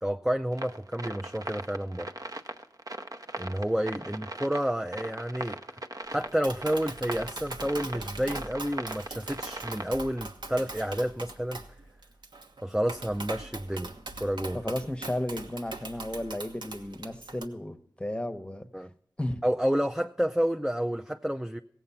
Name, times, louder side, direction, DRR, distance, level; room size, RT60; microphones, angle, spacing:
voice 1, 0.0-2.1 3.4-5.6 6.1-11.6 12.6-13.9 14.2-14.6 18.7-18.9 19.4-21.6, equal, 5° right, 6 dB, 0.4 m, -30 dB
sound 1, 0.5-10.3, right 2 dB, 50° right, 0.8 m, -39 dB
Tap, 6.2-17.4, right 2 dB, 80° right, 1.1 m, -41 dB
voice 2, 14.5-18.7 19.2-19.4, left 1 dB, 15° left, 11 dB, 0.9 m, -34 dB
16.5 x 7.8 x 5.6 m, 0.71 s
wide cardioid pair, 60°, 8 cm